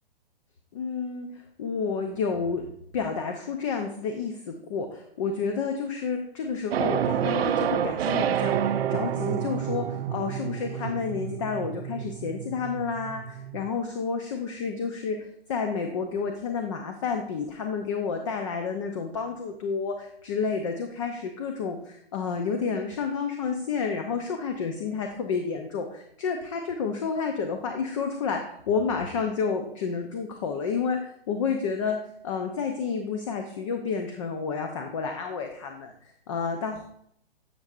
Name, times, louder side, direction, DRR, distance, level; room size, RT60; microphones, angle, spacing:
voice 1, 0.7-2.7 2.9-8.6 8.9-32.0 32.2-36.9, left 5 dB, 30° left, 5 dB, 0.6 m, -30 dB
sound 1, 6.7-13.7, right 9 dB, 75° right, 0.5 m, -29 dB
10.0 x 6.7 x 2.5 m, 0.70 s
hypercardioid pair, 155°, 31 cm